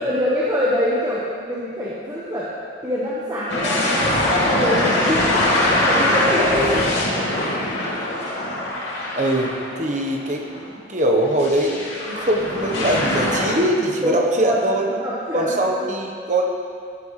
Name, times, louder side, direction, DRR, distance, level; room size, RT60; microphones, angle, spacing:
voice 1, 0.0-2.5 2.8-6.9 14.0-14.6 14.9-15.8, equal, 20° right, -7 dB, 1.3 m, -24 dB
sound 1, 3.5-10.0 10.5-10.6 11.4-13.5, left 1 dB, 85° left, 2.6 m, -22 dB
voice 2, 9.2-14.8 15.3-16.4, right 1 dB, 40° right, 1 dB, 1.1 m, -22 dB
14.5 x 11.0 x 3.3 m, 2.3 s
head